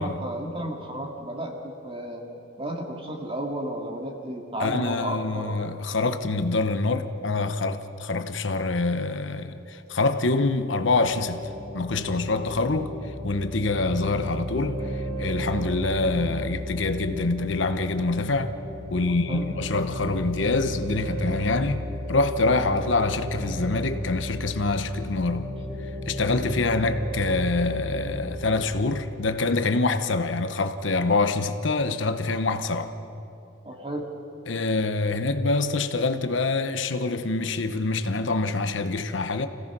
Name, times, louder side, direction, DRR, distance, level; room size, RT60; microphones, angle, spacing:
voice 1, 0.0-2.3 2.6-5.6 17.1-17.2 19.1-19.5 22.7-22.9 33.6-34.1, right 1 dB, 30° right, 2.3 m, -33 dB
voice 2, 4.6-11.5 11.7-12.9 13.2-18.5 18.9-25.5 26.1-32.9 34.5-39.5, left 3 dB, 70° left, 0.9 m, -25 dB
sound 1, 11.0-28.6, equal, 50° right, 4.8 m, -34 dB
26.0 x 17.0 x 6.1 m
head